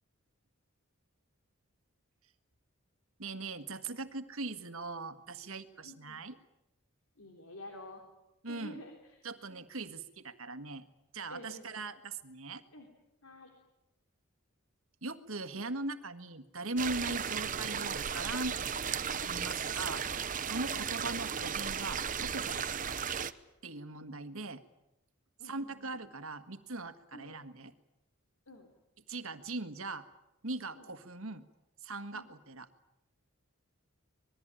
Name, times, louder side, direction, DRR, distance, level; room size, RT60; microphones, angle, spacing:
voice 1, 3.2-6.3 8.4-8.8 9.2-10.9 11.1-12.6 15.0-20.0 20.4-23.2 23.6-24.6 25.4-27.7 29.1-30.0 30.4-31.4 31.8-32.7, right 2 dB, 70° right, 10 dB, 1.6 m, -40 dB
voice 2, 5.8-6.2 7.2-8.0 8.5-9.2 9.6-9.7 11.3-11.9 12.7-12.9 13.2-13.5 17.1-17.2 20.7-20.9 25.4-26.0 27.1-27.4 28.5-28.7 30.7-30.9 32.1-32.3, left 2 dB, 75° left, 3 dB, 3.6 m, -50 dB
sound 1, 16.8-23.3, right 7 dB, 35° right, 0.8 m, -35 dB
26.0 x 21.0 x 9.0 m, 0.92 s
head